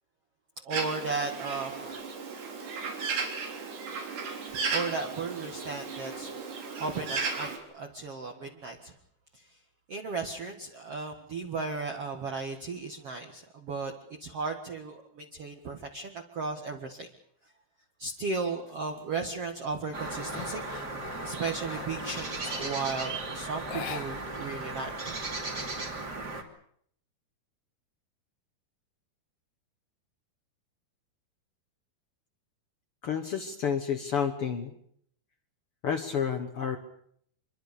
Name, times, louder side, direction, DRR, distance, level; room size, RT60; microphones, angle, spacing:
voice 1, 0.6-2.0 4.7-8.9 9.9-13.9 14.2-17.1 18.0-20.6 21.2-25.2, right 4 dB, 45° right, 3 dB, 2.2 m, -35 dB
Bird, 0.7-7.6, right 4 dB, 80° right, 5.9 m, -35 dB
sound 1, 18.7-19.0 19.4-22.9 23.6-24.6 24.8-24.9 25.3-26.3, left 8 dB, 55° left, 2.4 m, -44 dB
sound 2, 19.9-26.4, right 3 dB, 25° right, 2.9 m, -36 dB
voice 2, 33.0-34.7 35.8-36.8, left 7 dB, 70° left, 7 dB, 1.3 m, -30 dB
26.0 x 23.0 x 6.9 m, 0.66 s
omnidirectional pair, 4.7 m